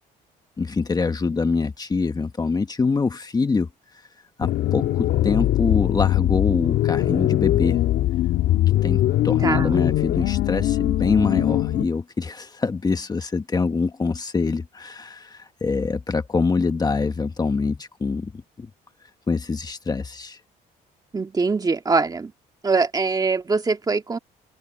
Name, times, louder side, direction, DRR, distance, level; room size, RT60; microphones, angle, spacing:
voice 1, 0.6-3.7 4.4-7.8 8.8-18.3 18.6-18.7 19.3-20.4, left 4 dB, 25° left, 1.5 m, -24 dB
sound 1, 4.4-11.8, left 14 dB, 75° left, 2.5 m, -21 dB
voice 2, 9.4-9.7 21.1-22.3 22.6-24.2, right 4 dB, 20° right, 2.0 m, -22 dB
cardioid pair, 110°, 17 cm